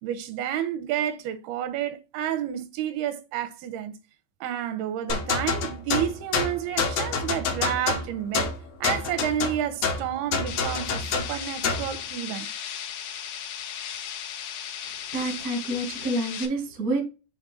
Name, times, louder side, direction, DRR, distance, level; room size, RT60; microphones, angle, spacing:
voice 1, 0.0-4.0 4.4-8.5 8.8-12.5, right 10 dB, 85° right, 2.7 m, -30 dB
sound 1, 5.1-11.9, left 5 dB, 70° left, 1.6 m, -27 dB
sound 2, 10.5-16.5, left 9 dB, 85° left, 2.9 m, -36 dB
voice 2, 14.8-17.0, right 1 dB, 70° right, 0.8 m, -28 dB
7.4 x 3.4 x 4.0 m
omnidirectional pair, 4.5 m